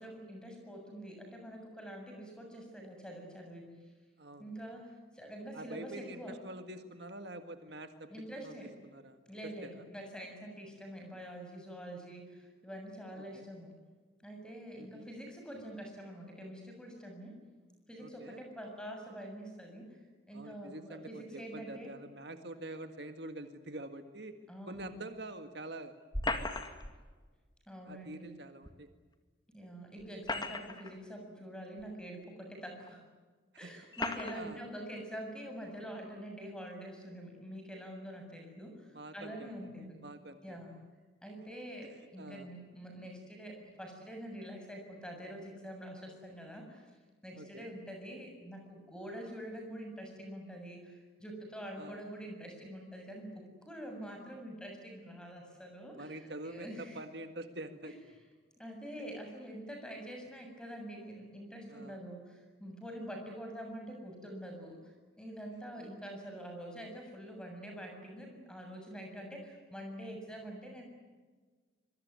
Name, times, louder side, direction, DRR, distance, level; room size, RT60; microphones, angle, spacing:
voice 1, 0.0-3.7 4.4-6.4 8.1-8.7 9.3-13.7 14.2-17.4 17.9-20.0 20.3-21.9 24.5-24.9 27.7-28.3 29.5-33.0 33.6-40.0 40.4-40.8 41.2-46.9 47.2-57.0 57.8-57.9 58.6-70.8, equal, 5° left, 3 dB, 7.2 m, -46 dB
voice 2, 4.2-4.5 5.5-8.1 8.4-9.2 9.6-9.9 13.2-13.5 14.8-15.1 18.0-18.4 20.3-24.4 24.7-25.9 27.9-28.9 33.5-33.7 34.3-34.6 38.9-39.5 40.0-40.6 42.2-42.5 47.4-47.7 51.8-52.0 55.9-57.9 61.7-62.0 65.8-65.9, right 1 dB, 60° right, 7 dB, 1.9 m, -46 dB
sound 1, 26.1-27.0 28.7-28.8 30.0-30.9 31.8-31.9 32.9-33.0 33.9-34.4, left 2 dB, 20° left, 2.1 m, -36 dB
25.5 x 23.5 x 9.6 m, 1.4 s
head